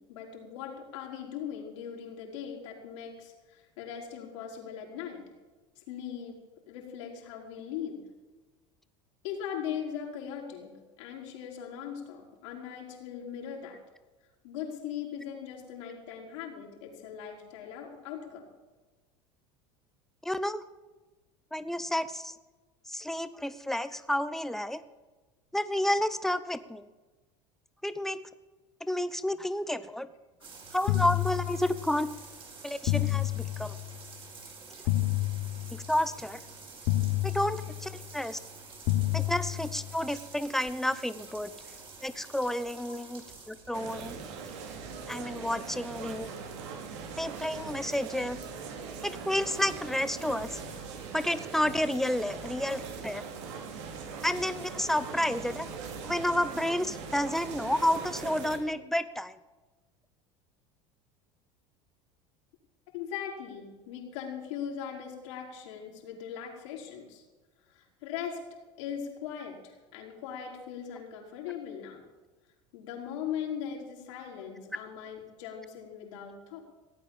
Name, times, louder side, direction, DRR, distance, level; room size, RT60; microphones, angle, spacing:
voice 1, 0.1-5.2 5.8-6.3 6.7-8.0 9.2-10.7 11.0-13.8 14.4-18.5 42.9-43.0 48.2-48.3 52.7-52.8 62.9-67.2 67.7-68.4 68.8-72.0 72.7-76.6, left 8 dB, 80° left, 0 dB, 4.2 m, -39 dB
voice 2, 20.2-20.6 21.5-22.3 22.9-24.8 25.5-26.9 27.8-28.2 28.9-30.1 30.7-32.1 32.6-33.7 35.7-36.4 37.2-38.4 39.1-41.5 42.0-44.2 45.1-46.3 47.2-48.4 49.0-50.6 51.1-53.2 54.2-55.7 56.0-59.4, left 1 dB, ahead, 13 dB, 0.9 m, -30 dB
sound 1, 30.4-46.2, right 4 dB, 35° right, 4.3 m, -49 dB
sound 2, 30.9-32.1 32.9-34.1 34.9-36.1 36.9-38.1 38.9-40.1, left 17 dB, 60° left, 1.3 m, -30 dB
sound 3, 43.7-58.6, right 5 dB, 80° right, 2.8 m, -41 dB
17.0 x 9.0 x 7.2 m, 1.2 s
supercardioid pair, 100°, 15 cm